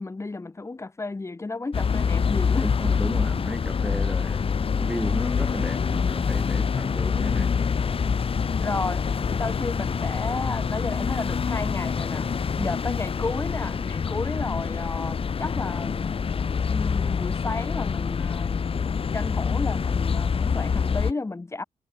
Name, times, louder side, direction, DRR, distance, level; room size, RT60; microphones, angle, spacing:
voice 1, 0.0-2.7 8.6-9.1 9.4-12.3 12.6-16.1 16.7-18.6 19.1-21.6, left 3 dB, 20° left, 1.5 m, -32 dB
sound 1, 1.7-21.1, left 6 dB, 40° left, 0.9 m, -26 dB
voice 2, 2.6-7.5 9.3-9.5 12.6-12.8, equal, 5° right, 2.2 m, -34 dB
wide cardioid pair, 145°, 15 cm